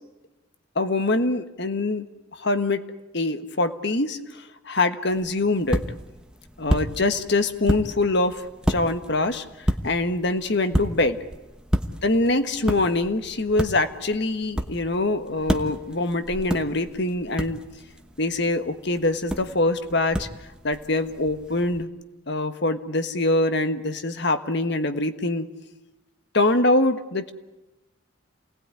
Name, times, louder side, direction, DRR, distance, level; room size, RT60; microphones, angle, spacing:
voice 1, 0.7-2.0 2.4-2.8 3.1-5.8 6.6-11.2 12.0-17.6 18.2-20.3 20.6-21.9 22.3-25.5 26.3-27.3, left 2 dB, 55° left, 9 dB, 1.5 m, -24 dB
sound 1, 5.1-21.8, equal, 5° right, 1.2 m, -32 dB
28.0 x 19.0 x 9.8 m, 1.0 s
head